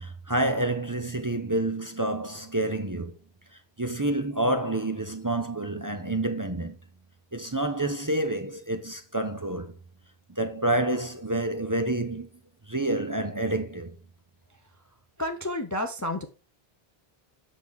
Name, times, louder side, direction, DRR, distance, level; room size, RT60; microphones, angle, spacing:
voice 1, 0.0-3.1 3.8-6.8 7.3-9.7 10.3-12.3 12.7-14.0, right 1 dB, 20° right, 0.7 m, -28 dB
voice 2, 15.2-16.3, left 1 dB, 20° left, 0.6 m, -30 dB
7.6 x 6.1 x 3.6 m
omnidirectional pair, 1.0 m